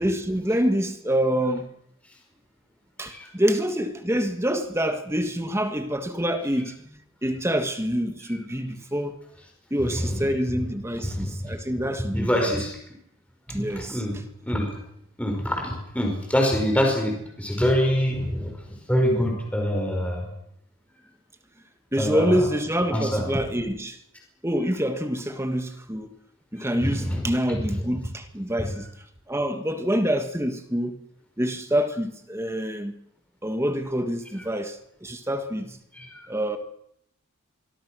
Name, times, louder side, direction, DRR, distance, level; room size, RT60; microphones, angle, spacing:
voice 1, 0.0-1.7 3.0-6.8 7.2-9.2 9.7-12.5 13.5-14.2 21.9-24.0 24.4-26.1 26.5-28.9 29.3-31.0 31.4-33.0 33.4-35.8 36.3-36.6, equal, 10° right, 1.6 m, -26 dB
voice 2, 11.0-11.5 12.1-12.8 13.8-14.2 14.4-14.7 15.2-18.6 18.9-20.3 22.0-22.4 22.9-23.3 26.8-27.3 35.9-36.2, equal, 5° left, 5.2 m, -25 dB
25.5 x 23.5 x 6.3 m
head